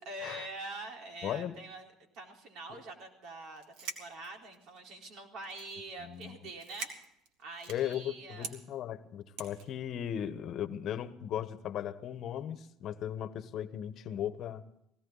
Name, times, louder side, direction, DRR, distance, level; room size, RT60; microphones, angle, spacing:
voice 1, 0.1-6.9 7.4-8.5, right 2 dB, 60° right, 2 dB, 4.2 m, -45 dB
voice 2, 1.2-1.5 2.7-2.8 6.0-6.4 7.7-14.6, left 10 dB, 50° left, 12 dB, 1.2 m, -37 dB
sound 1, 3.6-4.8 5.4-5.9 6.1-6.3 6.5-8.0 8.4-8.6 9.4-9.7, right 5 dB, 80° right, 2.7 m, -43 dB
18.5 x 18.0 x 4.1 m, 0.76 s
cardioid pair, 120°, 0 cm